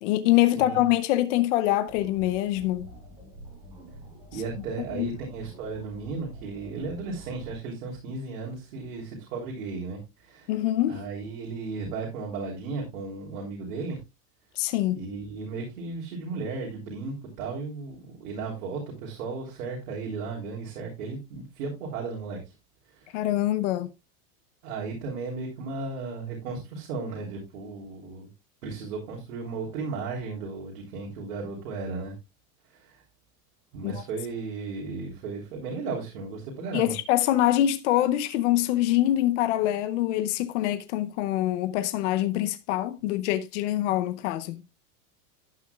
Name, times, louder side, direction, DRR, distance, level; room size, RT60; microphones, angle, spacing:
voice 1, 0.0-2.9 4.9-5.1 10.5-11.0 14.6-15.0 23.1-23.9 33.8-34.0 36.7-44.6, left 14 dB, 50° left, 0.7 m, -24 dB
sound 1, 1.9-7.6, right 1 dB, 10° right, 4.1 m, -46 dB
voice 2, 4.3-10.5 10.9-14.0 14.9-22.5 22.9-23.2 24.6-28.3 28.6-32.2 32.7-33.0 33.7-36.9, right 4 dB, 65° right, 3.5 m, -35 dB
12.0 x 9.2 x 2.3 m
supercardioid pair, 165°, 46 cm